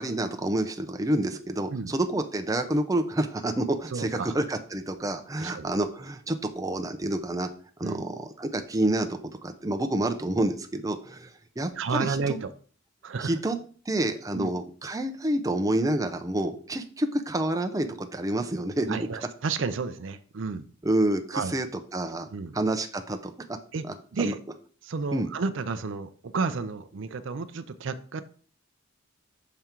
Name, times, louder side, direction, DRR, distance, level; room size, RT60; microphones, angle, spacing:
voice 1, 0.0-7.5 7.8-11.3 11.6-12.4 13.2-13.6 13.9-19.0 20.8-21.7 21.9-22.3 22.5-23.3 23.8-24.3 25.1-25.3, right 1 dB, 15° right, 5 dB, 0.6 m, -28 dB
voice 2, 3.9-4.3 5.4-5.7 7.8-8.1 11.8-12.5 13.0-13.3 14.3-14.5 18.9-20.7 21.3-21.6 22.3-22.6 23.7-23.9 24.1-24.4 24.8-28.2, right 4 dB, 65° right, 12 dB, 0.5 m, -31 dB
6.8 x 3.7 x 4.4 m, 0.43 s
head